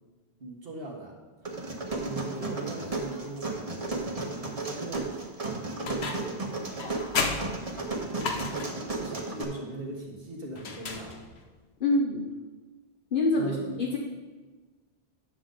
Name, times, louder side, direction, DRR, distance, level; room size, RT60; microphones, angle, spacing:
voice 1, 0.4-1.2 2.0-5.2 5.8-7.1 7.7-11.2 13.4-13.8, right 2 dB, 65° right, -3 dB, 1.7 m, -40 dB
sound 1, 1.5-9.4, right 3 dB, 35° right, 1.2 m, -34 dB
sound 2, 5.9-6.4 6.8-8.9 10.6-11.5, left 4 dB, 85° left, 1.2 m, -33 dB
voice 2, 11.8-12.3 13.1-14.0, left 2 dB, 60° left, -1 dB, 1.0 m, -26 dB
9.9 x 6.9 x 3.8 m, 1.3 s
omnidirectional pair, 1.0 m